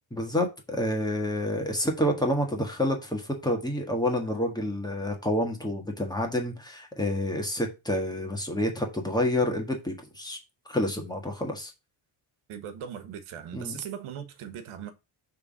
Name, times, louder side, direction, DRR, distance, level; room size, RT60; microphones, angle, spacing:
voice 1, 0.1-10.4 10.7-11.7 13.5-13.8, left 1 dB, 10° left, 1.5 m, -28 dB
voice 2, 12.5-14.9, right 8 dB, 85° right, 1.4 m, -39 dB
6.4 x 3.7 x 6.2 m
cardioid pair, 170°, 49 cm